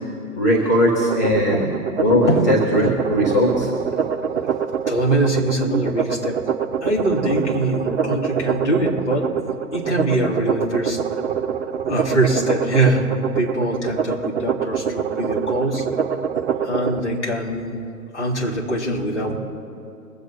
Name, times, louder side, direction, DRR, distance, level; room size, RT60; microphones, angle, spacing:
voice 1, 0.3-1.7 2.0-3.7 5.6-5.8, left 1 dB, 15° left, -2 dB, 0.4 m, -19 dB
sound 1, 1.0-17.0, right 8 dB, 50° right, 0.9 m, -25 dB
voice 2, 4.9-6.5 6.8-11.0 11.9-13.1 13.3-15.8 16.6-17.8 18.1-19.4, right 1 dB, 50° left, -3 dB, 3.4 m, -23 dB
22.5 x 7.9 x 4.4 m, 2.6 s
figure-of-eight pair, 125°, 45 cm